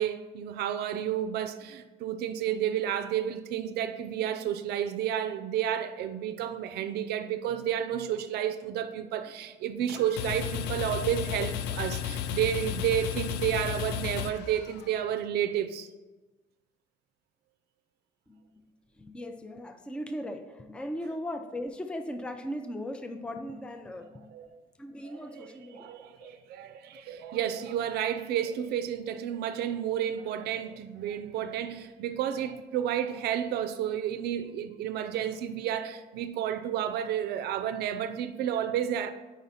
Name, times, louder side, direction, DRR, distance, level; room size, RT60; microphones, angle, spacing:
voice 1, 0.0-15.9 24.3-24.6 25.0-39.1, right 10 dB, 75° right, 0.4 m, -31 dB
sound 1, 9.9-15.1, left 9 dB, 80° left, 0.4 m, -34 dB
voice 2, 19.0-24.3 24.8-25.9 26.2-26.4 27.0-27.2, left 1 dB, 5° left, 0.4 m, -38 dB
5.0 x 4.0 x 5.6 m
cardioid pair, 110°, 17 cm